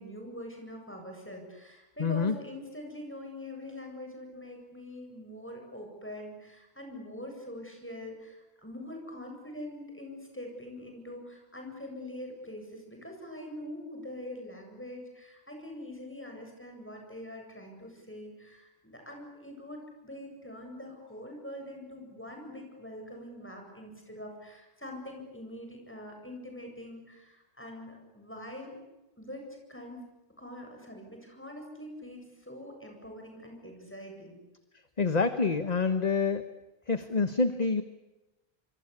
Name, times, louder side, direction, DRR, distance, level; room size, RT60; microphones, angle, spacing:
voice 1, 0.0-28.8 29.2-30.0 30.4-34.4, left 1 dB, 10° left, 2 dB, 8.0 m, -44 dB
voice 2, 2.0-2.4 35.0-36.4 36.9-37.8, left 4 dB, 40° left, 10 dB, 1.3 m, -27 dB
26.5 x 25.5 x 8.5 m, 1.0 s
omnidirectional pair, 1.0 m